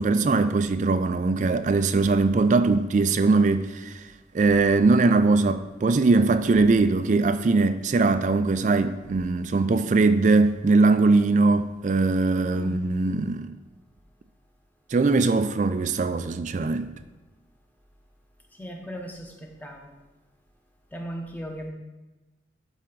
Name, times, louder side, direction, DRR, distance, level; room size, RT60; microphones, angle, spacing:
voice 1, 0.0-4.0 4.3-13.5 14.9-16.9, right 3 dB, 40° right, 0.3 m, -21 dB
voice 2, 18.6-19.9 20.9-21.7, equal, 10° left, 0.8 m, -37 dB
12.0 x 4.3 x 3.9 m
head